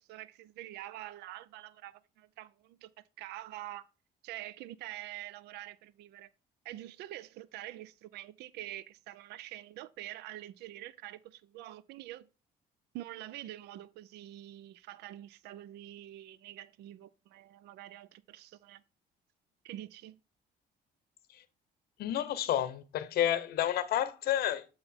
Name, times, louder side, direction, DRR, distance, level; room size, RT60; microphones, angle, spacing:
voice 1, 0.0-2.9 3.2-3.8 4.2-6.3 6.6-12.3 12.9-18.8 19.6-20.2, right 14 dB, 80° right, 0.5 m, -46 dB
voice 2, 22.0-24.7, left 11 dB, 65° left, 0.7 m, -30 dB
7.8 x 4.0 x 4.3 m
cardioid pair, 110°, 17 cm